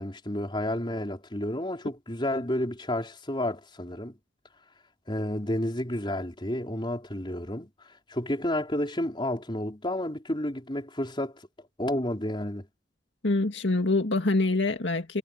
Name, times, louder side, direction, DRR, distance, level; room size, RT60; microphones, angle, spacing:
voice 1, 0.0-4.2 5.1-7.7 8.1-11.4 11.8-12.7, left 1 dB, 25° left, 4.6 m, -31 dB
voice 2, 13.2-15.2, left 2 dB, 80° left, 2.1 m, -25 dB
head